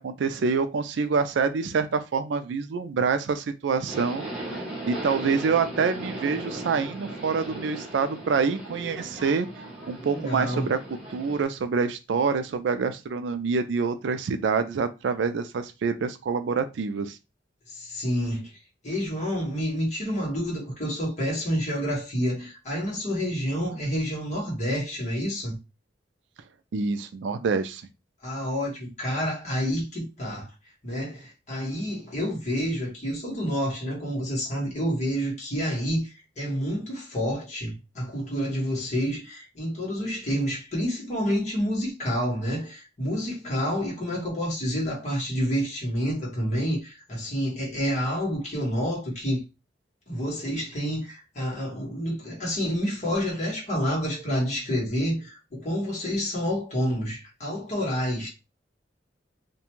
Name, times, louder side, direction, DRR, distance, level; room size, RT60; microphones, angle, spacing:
voice 1, 0.0-4.2 4.8-9.5 9.9-10.8 11.1-17.2 26.7-27.8, right 5 dB, 80° right, 0.4 m, -26 dB
Subway metro underground, 3.9-11.4, right 1 dB, ahead, 1.0 m, -37 dB
voice 2, 10.0-10.6 17.7-18.6 18.8-25.6 28.2-30.5 30.8-49.4 50.1-58.3, equal, 40° left, 1.2 m, -28 dB
2.5 x 2.2 x 2.9 m
head